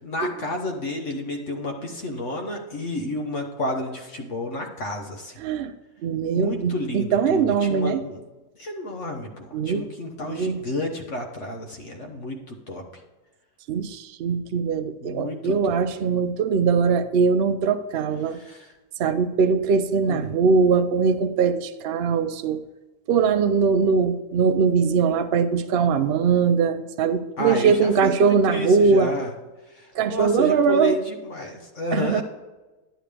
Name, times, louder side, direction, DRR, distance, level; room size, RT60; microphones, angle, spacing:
voice 1, 0.0-5.4 6.3-8.2 8.6-12.8 15.0-15.8 18.3-18.7 20.1-20.3 27.4-29.3 29.7-32.2, left 1 dB, 50° left, 2 dB, 1.3 m, -31 dB
voice 2, 5.4-5.7 6.0-8.0 9.5-9.9 10.2-10.6 13.7-18.4 19.0-22.6 23.1-29.1 30.0-31.0 31.9-32.2, right 5 dB, 90° right, 9 dB, 0.5 m, -21 dB
11.0 x 9.0 x 3.4 m, 1.2 s
omnidirectional pair, 1.8 m